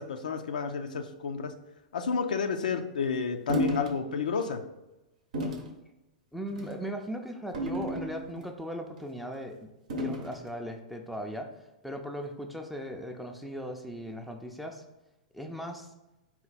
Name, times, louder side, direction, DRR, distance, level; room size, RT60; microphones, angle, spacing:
voice 1, 0.0-1.5 1.9-4.6, left 6 dB, 80° left, 7 dB, 0.4 m, -31 dB
sound 1, 3.5-3.9 4.4-4.6 5.3-5.7 6.5-6.8 7.5-8.5 9.9-10.4, equal, 75° right, 0.7 m, -32 dB
voice 2, 6.3-9.7 9.9-14.8 15.3-15.9, equal, ahead, 3 dB, 0.4 m, -38 dB
4.3 x 2.2 x 4.0 m, 1.0 s
hypercardioid pair, 115°, 4 cm